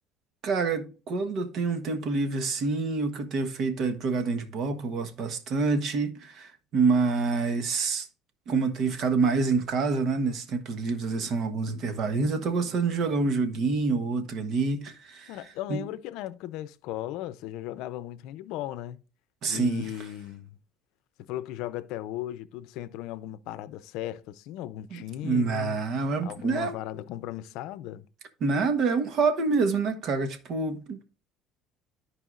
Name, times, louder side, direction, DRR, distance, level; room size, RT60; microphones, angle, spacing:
voice 1, 0.4-8.1 8.5-15.3 15.7-15.8 19.4-19.8 24.9-26.8 28.4-31.0, right 4 dB, 55° right, 1.3 m, -27 dB
voice 2, 15.3-19.0 19.5-20.6 21.3-25.8 26.2-28.1, left 13 dB, 75° left, 0.5 m, -37 dB
14.0 x 4.8 x 2.5 m
cardioid pair, 125°, 0 cm